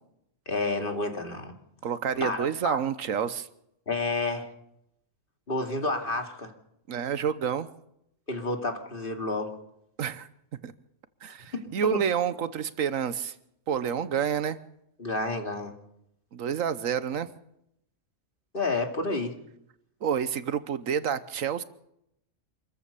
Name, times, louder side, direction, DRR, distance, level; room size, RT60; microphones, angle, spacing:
voice 1, 0.5-1.5 2.2-2.8 3.9-4.5 5.5-6.5 8.3-9.6 11.5-11.6 11.9-12.0 15.0-15.7 18.5-19.3, left 2 dB, 40° left, 4 dB, 2.7 m, -30 dB
voice 2, 1.8-3.5 6.9-7.7 10.0-10.3 10.6-10.7 11.2-13.3 13.7-14.6 16.3-17.3 20.0-21.6, right 8 dB, 85° right, 14 dB, 1.4 m, -29 dB
27.0 x 14.0 x 6.9 m, 0.79 s
omnidirectional pair, 1.4 m